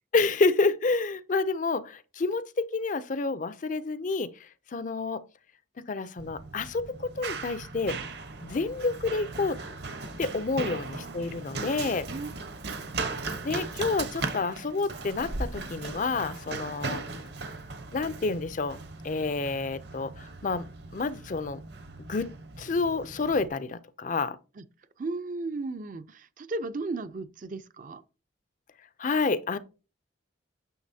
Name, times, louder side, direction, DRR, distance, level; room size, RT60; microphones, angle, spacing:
voice 1, 0.1-4.3 4.7-5.2 5.9-8.0 8.4-9.6 10.2-12.1 13.4-17.0 17.9-18.8 19.0-20.6 20.9-21.6 22.1-22.3 22.6-24.4 29.0-29.6, left 3 dB, 40° left, 0.5 m, -29 dB
Run, 6.2-23.5, right 3 dB, 60° right, 1.0 m, -38 dB
voice 2, 10.7-11.5 12.1-12.3 12.6-12.8 24.6-24.7 25.0-28.0, right 3 dB, 45° right, 0.5 m, -36 dB
9.4 x 6.7 x 2.7 m
head